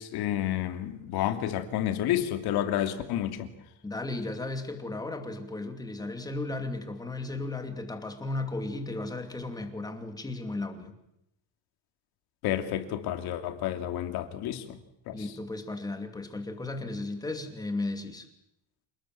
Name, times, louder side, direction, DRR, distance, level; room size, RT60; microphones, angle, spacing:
voice 1, 0.0-3.5 12.4-14.8 15.1-15.2, left 11 dB, 60° left, 7 dB, 2.8 m, -30 dB
voice 2, 3.8-10.9 15.1-18.3, left 2 dB, 10° left, 6 dB, 2.6 m, -35 dB
28.0 x 19.5 x 7.7 m, 0.81 s
cardioid pair, 165°, 43 cm